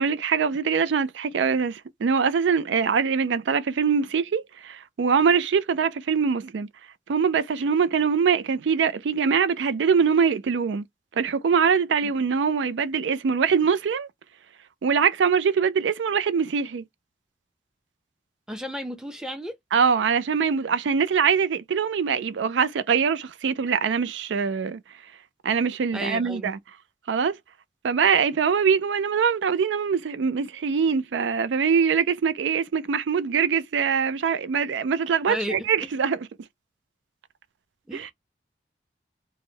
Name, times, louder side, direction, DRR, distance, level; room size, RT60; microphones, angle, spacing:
voice 1, 0.0-6.7 7.1-10.9 11.2-14.1 14.8-16.8 19.7-24.8 25.4-26.6 27.1-27.4 27.8-36.2 37.9-38.1, right 6 dB, 80° right, 0.4 m, -23 dB
voice 2, 18.5-19.5 25.9-26.5 35.3-35.7 37.9-38.1, equal, 5° right, 0.6 m, -33 dB
3.5 x 2.1 x 3.2 m
head